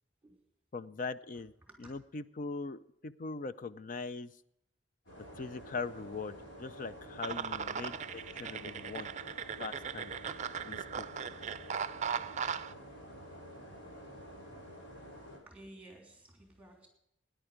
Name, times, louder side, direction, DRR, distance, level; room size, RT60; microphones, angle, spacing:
voice 1, 0.7-1.5 1.8-4.3 5.4-9.1 9.6-10.1 10.6-11.1, left 4 dB, 45° left, 14 dB, 0.5 m, -41 dB
voice 2, 1.6-1.9 15.5-16.9, right 1 dB, 5° right, 2 dB, 3.3 m, -54 dB
sound 1, 5.0-15.4, equal, 70° left, 4.0 m, -50 dB
sound 2, 7.2-12.7, right 7 dB, 40° right, 0.5 m, -38 dB
16.5 x 10.5 x 5.1 m, 0.79 s
head